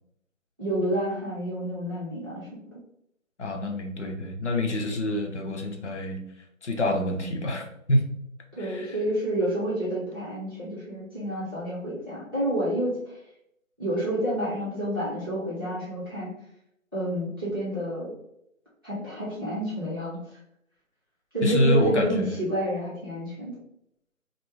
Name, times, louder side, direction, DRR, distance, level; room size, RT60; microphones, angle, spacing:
voice 1, 0.6-2.8 8.5-13.0 13.8-16.3 16.9-18.1 18.8-20.2 21.3-23.6, equal, 15° right, -13 dB, 0.8 m, -29 dB
voice 2, 3.4-6.2 6.6-8.1 8.6-9.0 21.4-22.5, left 1 dB, 55° left, 3 dB, 0.7 m, -27 dB
3.5 x 2.1 x 3.1 m, 0.77 s
figure-of-eight pair, 160°, 41 cm